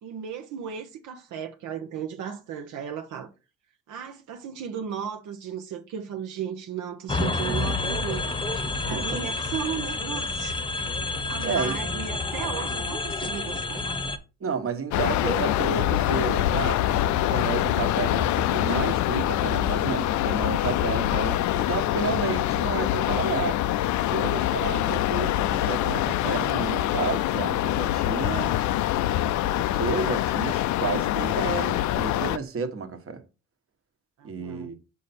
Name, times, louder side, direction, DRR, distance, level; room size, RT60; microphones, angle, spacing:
voice 1, 0.0-3.3 3.9-8.4 8.8-10.6 10.9-13.9 24.0-25.1 34.2-34.7, right 8 dB, 80° right, 0.9 m, -36 dB
sound 1, 7.1-14.2, left 3 dB, 15° left, 0.9 m, -29 dB
voice 2, 8.8-9.3 11.4-11.8 14.4-23.6 24.1-28.5 29.6-33.2 34.2-34.7, right 5 dB, 45° right, 1.3 m, -31 dB
sound 2, 14.9-32.4, left 13 dB, 70° left, 0.4 m, -25 dB
5.5 x 5.0 x 4.2 m
cardioid pair, 90°, 30 cm